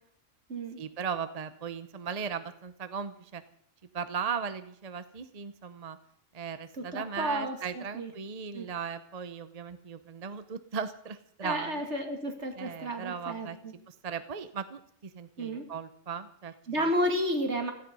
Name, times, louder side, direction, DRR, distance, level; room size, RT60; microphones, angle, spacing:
voice 1, 0.8-3.4 3.9-6.0 6.3-11.8 12.6-16.8, right 6 dB, 40° right, 11 dB, 0.8 m, -37 dB
voice 2, 6.9-8.1 8.5-8.7 11.4-13.7 15.4-15.7 16.7-17.7, equal, 70° right, 4 dB, 2.8 m, -32 dB
16.5 x 14.0 x 5.4 m, 0.65 s
omnidirectional pair, 1.2 m